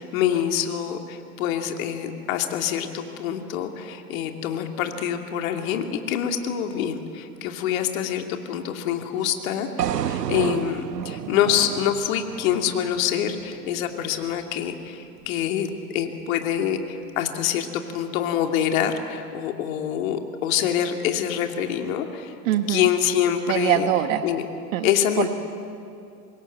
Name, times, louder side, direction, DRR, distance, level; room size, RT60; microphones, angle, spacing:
voice 1, 0.0-22.4 22.7-23.9 24.2-24.4 24.8-25.3, left 9 dB, 60° left, 4 dB, 2.8 m, -26 dB
sound 1, 9.8-13.9, right 9 dB, 85° right, 0.9 m, -31 dB
voice 2, 22.4-22.9 23.5-24.2 24.7-24.9 25.2-25.3, right 12 dB, 55° right, 8 dB, 1.3 m, -23 dB
26.0 x 21.5 x 9.3 m, 2.5 s
hypercardioid pair, 100°, 47 cm